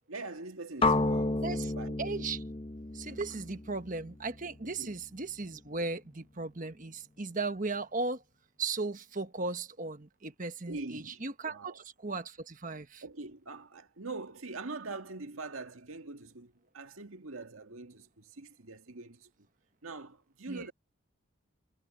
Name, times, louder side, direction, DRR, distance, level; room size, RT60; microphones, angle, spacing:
voice 1, 0.1-2.0 4.6-4.9 10.7-11.8 13.0-19.3 19.8-20.7, right 3 dB, 85° right, 1.9 m, -43 dB
sound 1, 0.8-4.8, left 2 dB, 25° left, 0.8 m, -32 dB
voice 2, 1.4-1.7 2.0-2.4 2.9-8.2 8.6-13.0 20.5-20.6, right 3 dB, 40° right, 1.3 m, -36 dB
head